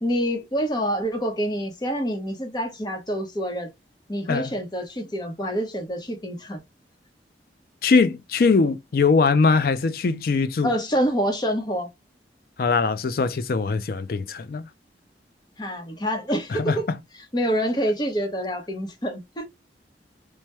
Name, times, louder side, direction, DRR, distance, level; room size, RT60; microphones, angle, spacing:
voice 1, 0.0-3.7 4.1-6.6 10.6-11.9 15.6-16.9 17.3-19.5, equal, 25° left, 0.8 m, -26 dB
voice 2, 7.8-10.7 12.6-14.7 16.5-17.0, left 4 dB, 55° left, 0.4 m, -21 dB
3.3 x 2.1 x 2.8 m
head